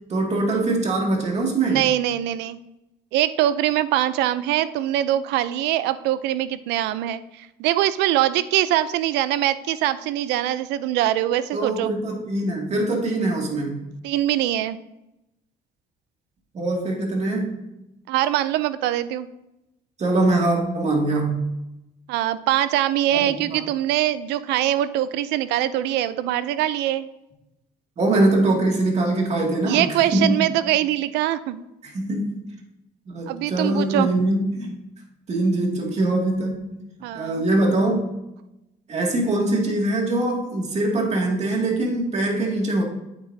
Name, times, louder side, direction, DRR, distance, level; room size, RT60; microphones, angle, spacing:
voice 1, 0.1-1.8 11.5-13.8 16.5-17.5 20.0-21.4 23.1-23.6 28.0-30.5 31.8-32.4 33.1-34.7 35.3-36.8 37.1-38.1 38.9-42.8, right 2 dB, 40° right, -1 dB, 2.2 m, -23 dB
voice 2, 1.7-2.6 3.1-11.9 14.0-14.8 18.1-19.3 22.1-27.1 29.6-31.6 33.3-34.1 37.0-37.4, right 13 dB, 90° right, 15 dB, 0.5 m, -23 dB
9.0 x 8.8 x 2.7 m, 0.91 s
cardioid pair, 110°, 17 cm